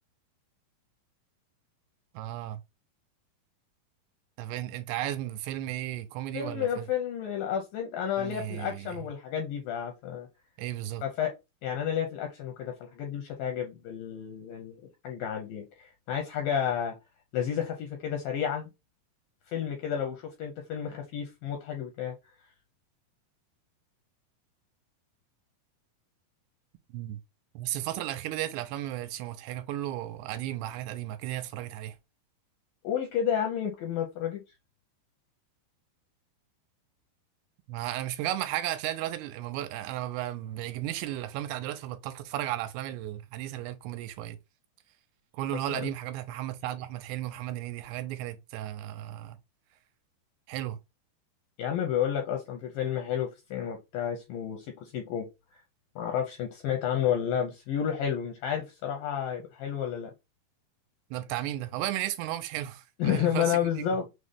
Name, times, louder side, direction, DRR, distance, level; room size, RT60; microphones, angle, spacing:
voice 1, 2.1-2.6 4.4-6.9 8.2-9.0 10.6-11.0 26.9-27.2 27.6-32.0 37.7-44.4 45.3-49.4 50.5-50.8 61.1-63.6, right 13 dB, 90° right, 2.7 m, -34 dB
voice 2, 6.3-10.3 11.0-11.3 11.6-16.9 17.3-18.7 19.5-22.2 32.8-34.4 45.5-45.9 51.6-55.3 55.5-55.6 56.0-60.1 63.0-64.1, left 9 dB, 80° left, 2.1 m, -31 dB
6.3 x 2.1 x 3.5 m
omnidirectional pair, 4.7 m